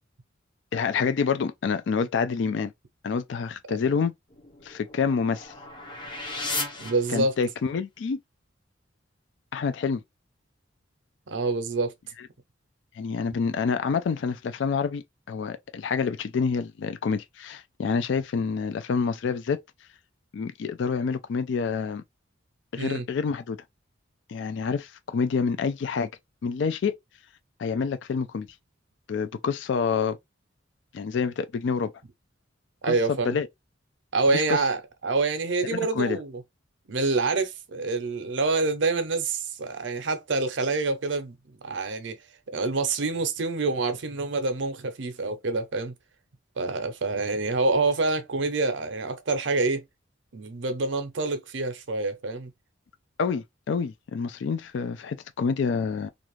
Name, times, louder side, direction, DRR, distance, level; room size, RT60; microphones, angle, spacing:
voice 1, 0.7-2.7 3.0-4.1 4.6-5.5 7.1-8.2 9.5-10.0 13.0-19.6 20.3-22.0 22.7-23.6 24.3-26.1 26.4-26.9 27.6-28.5 29.1-30.2 30.9-31.9 32.9-33.0 33.2-33.5 34.3-34.6 35.6-36.2 53.2-56.1, left 5 dB, 65° left, 0.4 m, -27 dB
sound 1, 4.3-7.7, left 3 dB, 25° left, 0.8 m, -36 dB
voice 2, 6.8-7.4 11.3-11.9 22.8-23.0 32.8-33.4 34.1-36.4 36.9-41.4 41.6-42.2 42.5-45.9 46.6-49.8 50.3-52.5, right 3 dB, 70° right, 0.6 m, -26 dB
2.6 x 2.4 x 3.0 m
head